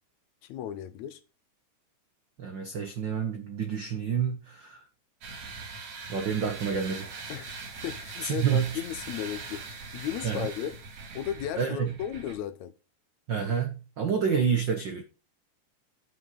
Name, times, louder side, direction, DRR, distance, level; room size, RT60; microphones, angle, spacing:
voice 1, 0.4-1.2 7.3-7.5 7.8-10.8 11.2-12.7, left 10 dB, 75° left, 1.8 m, -35 dB
voice 2, 2.4-4.8 6.1-7.1 8.2-8.8 10.2-10.5 11.6-11.9 13.3-15.0, right 7 dB, 80° right, 1.0 m, -28 dB
sound 1, 5.2-12.3, right 4 dB, 60° right, 2.9 m, -41 dB
10.5 x 6.2 x 5.6 m
omnidirectional pair, 3.6 m